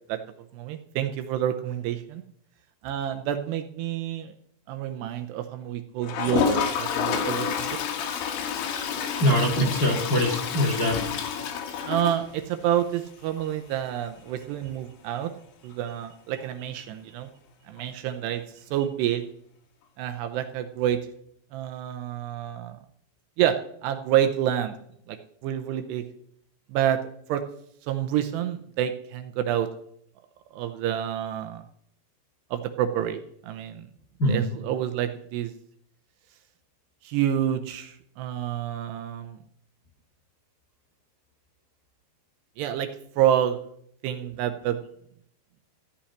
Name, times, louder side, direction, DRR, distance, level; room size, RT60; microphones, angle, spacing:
voice 1, 0.5-2.2 2.8-4.3 4.7-7.8 11.8-15.3 15.6-17.3 17.7-19.3 20.0-21.0 21.5-22.8 23.4-24.7 25.1-25.2 25.4-26.1 26.7-27.0 27.3-27.4 27.9-29.7 30.5-31.6 32.5-33.9 34.3-35.5 37.0-39.4 42.6-42.9 43.2-43.6 44.0-44.8, right 11 dB, 80° right, 7 dB, 2.6 m, -28 dB
Toilet flush, 6.0-12.7 13.1-13.2 13.4-13.5 13.7-13.8 16.4-16.5 17.8-17.9, left 7 dB, 75° left, 3.8 m, -29 dB
voice 2, 9.2-11.0 34.2-34.4, equal, 55° left, -1 dB, 1.0 m, -23 dB
14.5 x 5.8 x 10.0 m, 0.69 s
omnidirectional pair, 5.3 m